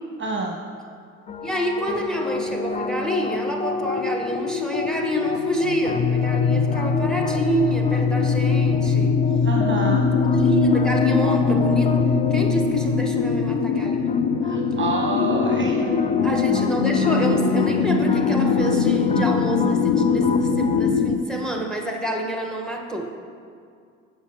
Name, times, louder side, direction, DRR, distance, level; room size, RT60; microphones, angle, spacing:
voice 1, 0.2-0.6 9.4-10.1 14.4-15.9, right 3 dB, 30° right, 0 dB, 1.1 m, -27 dB
sound 1, 1.3-20.9, left 4 dB, 20° left, 0.4 m, -26 dB
voice 2, 1.4-9.1 10.3-12.0 12.3-14.1 15.8-23.2, right 1 dB, ahead, 1 dB, 1.7 m, -28 dB
sound 2, 3.8-21.2, left 5 dB, 60° left, 0.8 m, -23 dB
16.0 x 6.5 x 3.2 m, 2.2 s
hypercardioid pair, 55°, 37 cm